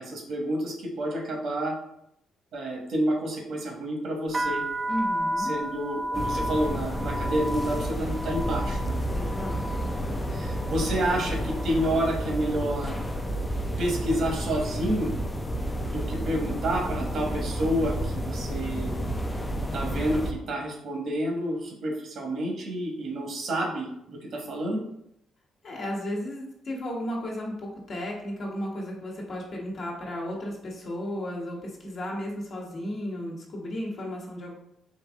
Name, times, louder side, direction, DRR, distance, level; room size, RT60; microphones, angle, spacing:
voice 1, 0.0-1.7 2.5-4.6 5.4-9.0 10.3-13.0 13.8-15.1 15.8-18.9 19.7-24.8, right 1 dB, 65° right, 0 dB, 1.4 m, -29 dB
sound 1, 4.3-12.2 12.5-13.1 13.8-14.1 14.3-15.8, equal, 30° right, 0.5 m, -34 dB
voice 2, 4.9-5.5 9.1-9.7 25.6-34.5, equal, 50° left, -2 dB, 1.2 m, -34 dB
sound 2, 6.1-20.3, equal, 15° left, 0.5 m, -31 dB
4.6 x 2.6 x 3.6 m, 0.76 s
cardioid pair, 90°, 0 cm